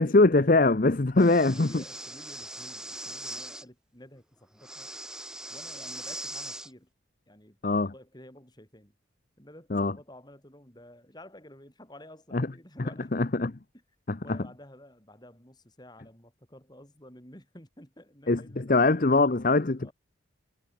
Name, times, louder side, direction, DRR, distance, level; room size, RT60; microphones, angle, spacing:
voice 1, 0.0-1.8 7.6-7.9 9.7-9.9 12.3-12.5 13.1-13.5 14.1-14.4 18.3-19.9, left 2 dB, 45° left, 0.8 m, -22 dB
voice 2, 1.1-4.9 5.5-6.9 7.3-8.9 9.4-13.1 14.2-19.2 19.8-19.9, left 1 dB, 20° left, 6.2 m, -51 dB
Breathing, 1.2-3.6 4.6-6.7, right 1 dB, 5° right, 1.6 m, -40 dB
head